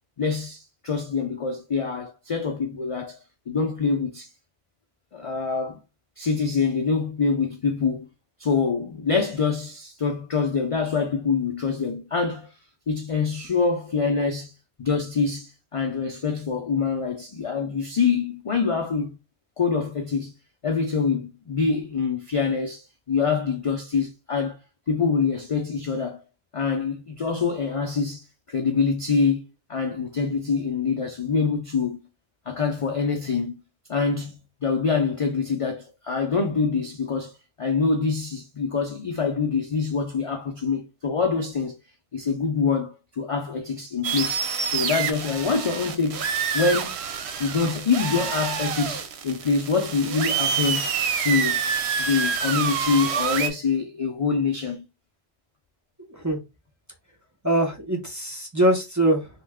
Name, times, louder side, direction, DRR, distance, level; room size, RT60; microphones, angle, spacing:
voice 1, 0.2-3.2 3.5-4.3 5.1-5.8 6.2-8.1 8.4-12.5 12.9-14.5 14.8-19.2 19.6-20.3 20.6-24.6 24.9-26.2 26.5-32.0 32.5-33.5 33.9-34.3 34.6-37.3 37.6-41.8 42.1-46.3 46.5-47.0 47.4-50.9 51.2-51.6 52.0-54.8, left 5 dB, 50° left, 0.4 m, -25 dB
sound 1, 44.0-53.5, right 6 dB, 80° right, 0.9 m, -27 dB
voice 2, 56.0-56.4 57.4-59.3, right 1 dB, 20° right, 0.6 m, -23 dB
3.1 x 2.2 x 3.4 m
omnidirectional pair, 1.1 m